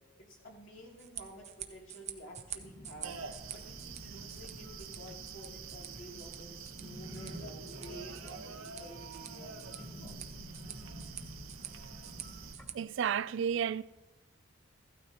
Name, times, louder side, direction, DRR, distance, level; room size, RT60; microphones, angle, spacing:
voice 1, 0.2-3.2 3.5-10.1, equal, 65° left, 2.8 m, -51 dB
sound 1, 0.9-12.7, right 10 dB, 35° right, 0.7 m, -49 dB
sound 2, 2.6-12.8, equal, 10° left, 1.6 m, -50 dB
sound 3, 3.0-12.6, right 5 dB, 90° right, 0.9 m, -47 dB
voice 2, 12.7-13.8, right 8 dB, 60° right, 0.3 m, -31 dB
15.5 x 12.5 x 2.9 m
head